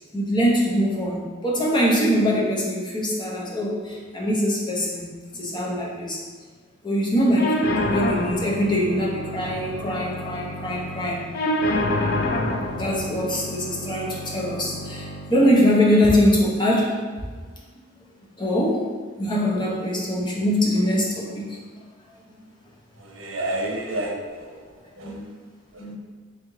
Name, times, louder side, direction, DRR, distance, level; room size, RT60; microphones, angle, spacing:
voice 1, 0.1-6.2 6.8-11.3 12.7-16.9 18.4-18.8 19.2-21.6 25.0-25.1 25.8-25.9, equal, 25° left, -4 dB, 0.7 m, -23 dB
sound 1, 7.4-15.4, left 1 dB, 50° left, 0.4 m, -28 dB
voice 2, 23.0-24.6 25.0-25.3 25.7-25.9, right 1 dB, 90° right, 0 dB, 0.7 m, -30 dB
3.4 x 3.1 x 3.7 m, 1.5 s
head